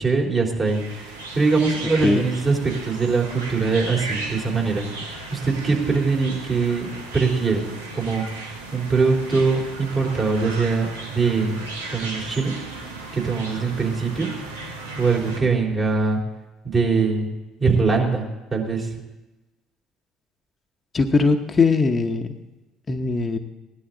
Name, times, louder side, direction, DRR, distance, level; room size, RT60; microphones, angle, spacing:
voice 1, 0.0-4.8 5.3-7.7 8.0-8.3 8.7-11.6 11.9-12.5 13.1-14.3 15.0-16.2 16.6-17.3 17.6-18.9, right 4 dB, 35° right, 0 dB, 3.5 m, -22 dB
sound 1, 0.7-15.4, right 2 dB, 90° right, 1.4 m, -36 dB
voice 2, 20.9-22.3 22.9-23.4, left 4 dB, 30° left, 5 dB, 0.9 m, -20 dB
17.0 x 11.0 x 3.9 m, 1.1 s
hypercardioid pair, 60°, 0 cm